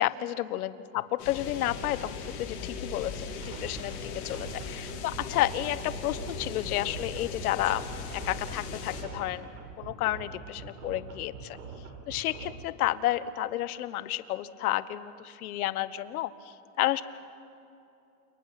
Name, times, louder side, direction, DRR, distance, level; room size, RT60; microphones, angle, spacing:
voice 1, 0.0-7.8 8.2-9.5 9.8-11.6 12.1-16.3 16.8-17.0, left 14 dB, 65° left, 14 dB, 1.3 m, -31 dB
sound 1, 1.2-9.0, left 4 dB, 85° left, 7.1 m, -39 dB
sound 2, 3.2-12.5, right 5 dB, 75° right, 5.4 m, -44 dB
30.0 x 28.5 x 5.9 m, 2.7 s
supercardioid pair, 170°, 47 cm